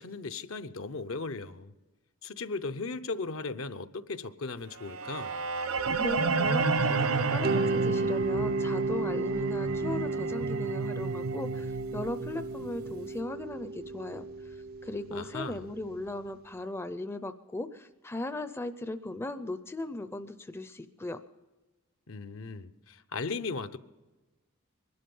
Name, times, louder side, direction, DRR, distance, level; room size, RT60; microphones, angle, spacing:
voice 1, 0.0-1.7 2.2-5.3 15.1-15.7 22.1-23.8, left 3 dB, 70° left, 11 dB, 0.8 m, -37 dB
sound 1, 4.8-12.9, right 4 dB, 75° right, 1.0 m, -31 dB
voice 2, 6.0-14.6 14.8-21.2, left 2 dB, 10° left, 11 dB, 0.5 m, -38 dB
Mallet percussion, 7.4-16.2, right 3 dB, 45° right, 0.5 m, -33 dB
22.0 x 12.0 x 5.4 m, 1.2 s
head